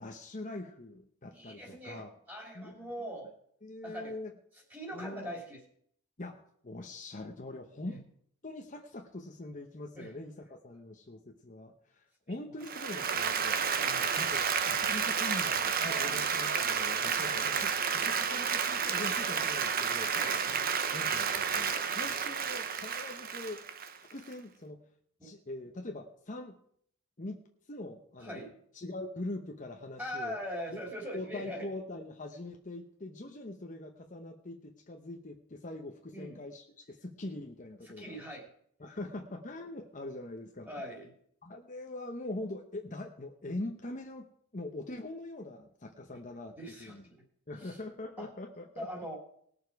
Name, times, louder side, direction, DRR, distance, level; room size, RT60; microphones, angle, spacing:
voice 1, 0.0-2.1 2.5-2.7 3.6-4.3 4.9-5.3 6.2-8.0 8.4-17.7 18.0-20.1 20.5-20.6 20.9-23.6 24.1-24.8 25.2-26.6 27.2-27.4 27.7-28.4 28.7-30.4 30.7-30.8 31.1-38.2 38.8-40.7 41.4-47.0 47.5-48.9, left 2 dB, 35° left, 3 dB, 0.9 m, -43 dB
voice 2, 1.3-3.3 3.8-4.2 4.7-5.6 7.8-8.0 9.9-10.1 13.7-14.1 16.0-16.1 17.2-17.3 20.1-20.4 25.2-25.3 28.2-28.5 30.0-31.7 36.1-36.4 37.8-38.5 40.7-41.1 46.6-47.0 47.6-47.8 48.2-48.3 48.8-49.2, equal, 10° right, 0 dB, 2.8 m, -41 dB
Applause, 12.6-24.3, right 6 dB, 40° right, 0.8 m, -31 dB
19.0 x 6.9 x 4.7 m, 0.65 s
head